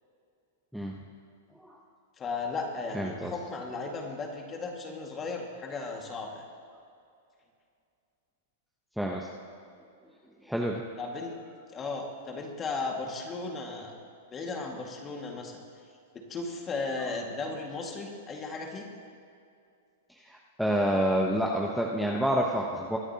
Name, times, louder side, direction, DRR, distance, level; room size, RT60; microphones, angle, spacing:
voice 1, 2.2-6.4 11.0-11.4 11.7-13.9 14.3-15.6 16.1-18.9, left 3 dB, 25° left, 2 dB, 1.9 m, -35 dB
voice 2, 2.9-3.3 9.0-9.3 10.4-10.8 20.2-23.0, equal, ahead, -2 dB, 0.9 m, -28 dB
23.0 x 9.7 x 2.9 m, 2.4 s
hypercardioid pair, 130°, 0 cm